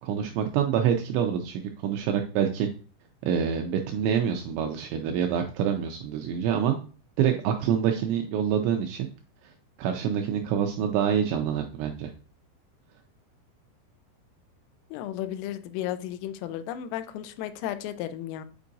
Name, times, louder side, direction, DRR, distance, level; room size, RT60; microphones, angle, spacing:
voice 1, 0.0-2.7 3.2-6.8 7.2-9.1 9.8-12.1, right 8 dB, 85° right, 4 dB, 2.6 m, -26 dB
voice 2, 14.9-18.5, left 11 dB, 90° left, 10 dB, 3.2 m, -34 dB
8.4 x 4.5 x 2.6 m, 0.39 s
omnidirectional pair, 5.7 m